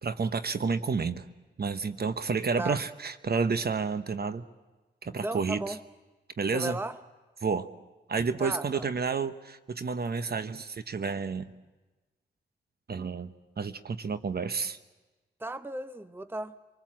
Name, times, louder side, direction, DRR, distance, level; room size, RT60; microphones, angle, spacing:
voice 1, 0.0-1.2 1.6-4.4 5.0-5.7 6.4-6.8 7.4-7.7 8.1-11.5 12.9-13.3 13.6-14.8, right 5 dB, 50° right, 1.0 m, -30 dB
voice 2, 5.0-5.8 6.5-7.0 8.4-8.9 15.4-16.6, right 2 dB, 10° right, 0.8 m, -35 dB
26.0 x 19.5 x 7.5 m
cardioid pair, 55°, 21 cm